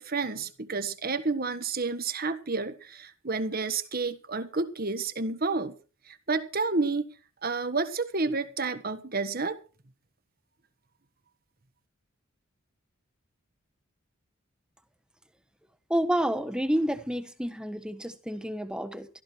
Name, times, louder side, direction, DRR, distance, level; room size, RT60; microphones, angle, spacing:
voice 1, 0.0-5.7 6.1-7.1 7.4-9.6, right 3 dB, 45° right, 1.4 m, -30 dB
voice 2, 15.9-19.1, equal, 5° right, 1.2 m, -29 dB
15.0 x 13.5 x 4.6 m
head